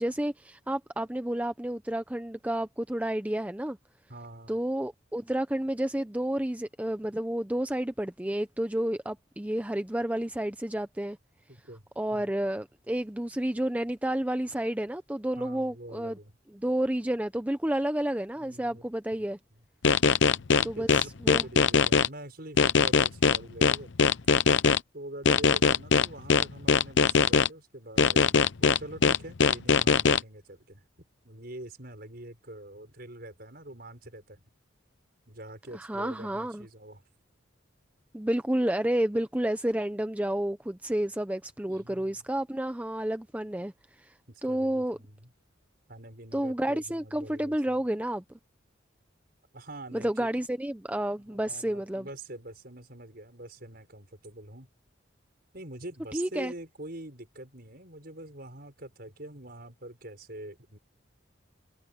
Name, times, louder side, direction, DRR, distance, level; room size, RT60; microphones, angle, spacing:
voice 1, 0.0-3.8 4.5-11.2 12.0-16.2 16.5-19.4 20.6-21.5 35.7-36.7 38.1-43.7 44.0-44.1 44.4-45.0 46.3-48.2 49.9-52.1 56.1-56.5, right 1 dB, 10° right, 0.6 m, -30 dB
voice 2, 4.1-4.6 11.5-11.9 12.2-12.3 15.4-16.4 18.4-18.8 19.5-19.6 20.0-23.9 24.9-30.8 31.2-34.4 35.3-37.0 41.7-42.2 44.3-45.3 45.9-47.7 49.5-50.3 51.2-54.7 55.5-60.8, right 1 dB, 50° right, 6.3 m, -45 dB
sound 1, 19.8-22.1 22.6-24.8 25.3-27.5 28.0-30.2, left 5 dB, 70° left, 0.7 m, -21 dB
head